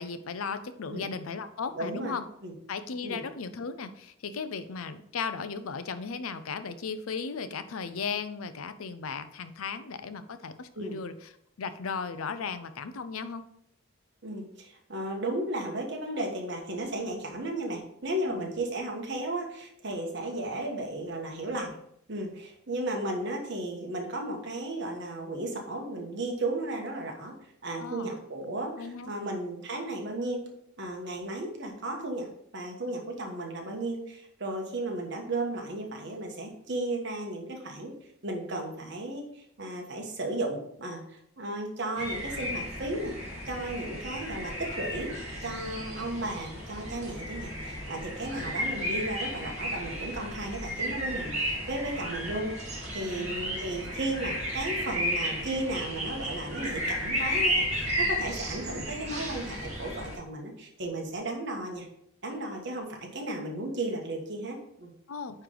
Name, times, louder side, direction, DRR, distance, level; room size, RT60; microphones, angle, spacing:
voice 1, 0.0-2.2 2.7-11.3 11.6-13.5 18.2-18.5 27.8-28.1 28.8-29.1 53.2-53.3 65.1-65.4, left 5 dB, 85° left, 11 dB, 0.6 m, -36 dB
voice 2, 1.7-2.2 2.4-2.5 3.0-3.2 10.8-11.0 14.2-21.7 22.1-27.3 27.6-30.5 30.8-37.9 38.2-43.1 43.4-45.1 45.4-61.9 62.2-64.9, right 1 dB, 55° right, 1 dB, 1.3 m, -34 dB
sound 1, 42.0-60.2, equal, 35° right, 1.7 m, -33 dB
9.3 x 3.3 x 3.9 m, 0.73 s
head